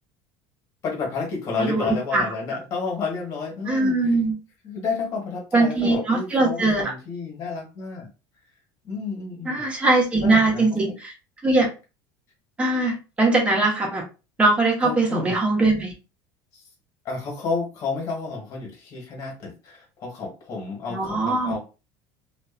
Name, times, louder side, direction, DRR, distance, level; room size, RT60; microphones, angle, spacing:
voice 1, 0.8-4.2 4.6-8.1 8.8-9.6 10.2-11.0 14.8-15.4 16.5-16.6 17.0-21.6, left 4 dB, 40° left, 0 dB, 1.2 m, -31 dB
voice 2, 1.6-2.2 3.7-4.3 5.5-6.8 9.4-11.1 11.4-11.7 12.6-14.0 14.4-15.9 20.9-21.5, right 2 dB, 15° right, -1 dB, 1.0 m, -21 dB
2.6 x 2.3 x 2.4 m, 0.31 s
cardioid pair, 140°, 9 cm